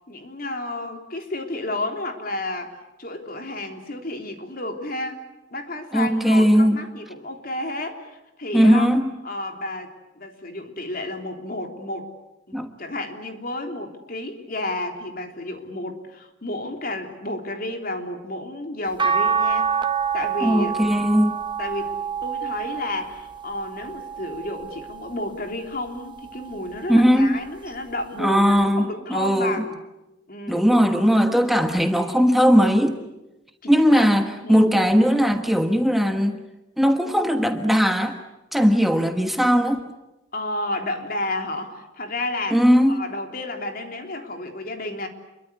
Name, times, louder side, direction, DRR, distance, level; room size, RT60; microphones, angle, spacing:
voice 1, 0.1-5.2 5.5-8.9 9.2-12.1 12.5-19.7 20.1-20.8 21.6-29.8 30.3-30.7 33.6-34.1 34.4-34.7 40.3-45.1, left 2 dB, 50° left, 4 dB, 3.5 m, -31 dB
voice 2, 5.9-6.8 8.5-9.1 12.5-12.7 20.4-21.3 26.9-27.4 28.2-29.7 30.5-33.0 33.7-36.4 36.8-38.2 38.5-39.8 42.5-43.0, equal, ahead, 5 dB, 1.3 m, -18 dB
sound 1, 19.0-25.3 25.9-27.2 28.6-28.7, right 6 dB, 25° right, 1.5 m, -27 dB
28.5 x 23.0 x 8.3 m, 0.95 s
head